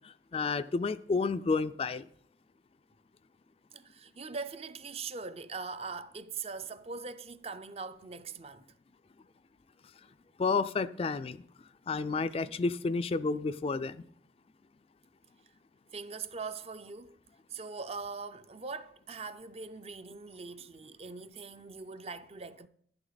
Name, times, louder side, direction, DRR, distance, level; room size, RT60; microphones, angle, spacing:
voice 1, 0.3-2.0 10.4-11.4 11.9-14.0, left 4 dB, 30° left, 0.3 m, -30 dB
voice 2, 3.7-8.6 15.9-17.2 17.5-22.7, right 4 dB, 35° right, 0.5 m, -41 dB
11.5 x 11.0 x 4.0 m
head